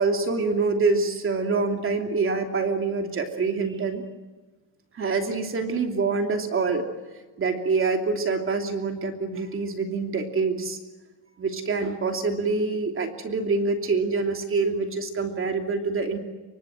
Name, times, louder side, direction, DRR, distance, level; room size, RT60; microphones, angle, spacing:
voice 1, 0.0-4.0 4.9-6.9 7.4-10.8 11.4-16.2, right 4 dB, 30° right, 4 dB, 3.0 m, -25 dB
28.0 x 24.5 x 7.7 m, 1.3 s
cardioid pair, 140°, 43 cm